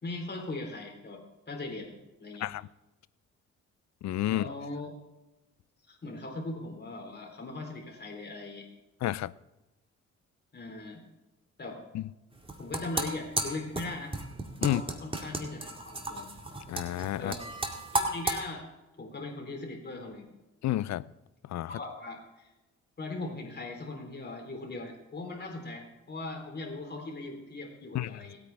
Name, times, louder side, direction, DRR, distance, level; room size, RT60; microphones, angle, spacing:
voice 1, 0.0-2.5 4.3-5.0 5.9-8.7 10.5-11.0 11.6-11.8 12.6-14.1 14.6-16.3 17.2-17.4 17.9-18.7 19.0-20.3 21.7-22.5 23.0-28.4, left 2 dB, 35° left, 3.8 m, -39 dB
voice 2, 4.0-4.4 9.0-9.3 11.9-12.0 14.6-14.8 16.7-17.3 20.6-21.0 21.5-21.7 27.9-28.1, left 14 dB, 65° left, 0.6 m, -30 dB
sound 1, 12.3-18.4, right 2 dB, 20° right, 2.1 m, -33 dB
26.5 x 9.1 x 3.5 m
cardioid pair, 90°, 30 cm